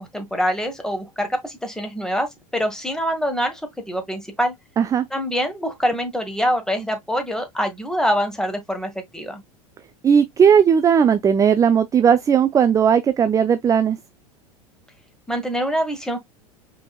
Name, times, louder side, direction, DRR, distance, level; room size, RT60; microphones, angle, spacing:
voice 1, 0.0-3.6 3.9-4.5 5.1-9.4 15.3-16.2, equal, 5° left, 1.4 m, -25 dB
voice 2, 10.0-14.0, right 7 dB, 15° right, 0.4 m, -16 dB
5.1 x 3.5 x 2.3 m
figure-of-eight pair, 85°, 19 cm